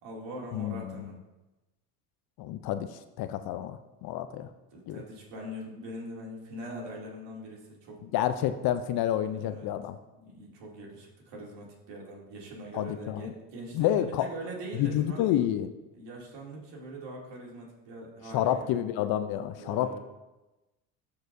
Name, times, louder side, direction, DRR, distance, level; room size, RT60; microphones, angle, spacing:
voice 1, 0.0-1.2 4.7-8.0 9.3-9.7 10.2-15.2 15.9-18.8 19.6-20.0, right 1 dB, 60° right, -2 dB, 2.6 m, -42 dB
voice 2, 0.5-1.1 2.4-4.5 4.9-5.0 8.1-10.0 12.7-13.2 13.7-14.3 14.7-15.7 18.3-20.0, left 11 dB, 50° left, 11 dB, 0.6 m, -29 dB
13.5 x 4.8 x 2.6 m, 1.0 s
hypercardioid pair, 70°, 48 cm